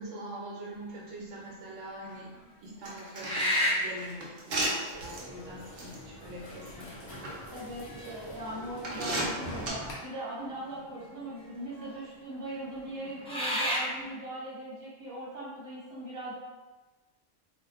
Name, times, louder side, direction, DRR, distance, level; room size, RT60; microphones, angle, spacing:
voice 1, 0.0-2.3 2.6-7.2, right 1 dB, 80° right, -4 dB, 1.2 m, -43 dB
sound 1, 1.1-1.5 2.1-2.2 3.1-3.9 5.2-5.3 6.2-6.7 7.1-7.2 7.8-8.5 10.1-10.2 10.6-11.2 11.8-12.0 12.9-13.9, left 1 dB, 5° left, 0.5 m, -31 dB
sound 2, 2.8-5.2 5.8-5.9 6.8-7.3 8.0-8.1 8.8-9.7, right 1 dB, 60° right, 0.8 m, -34 dB
sound 3, 4.9-9.9, equal, 55° left, 0.8 m, -45 dB
voice 2, 7.5-16.3, right 1 dB, 15° right, -9 dB, 1.0 m, -40 dB
2.7 x 2.3 x 3.5 m, 1.2 s
omnidirectional pair, 1.3 m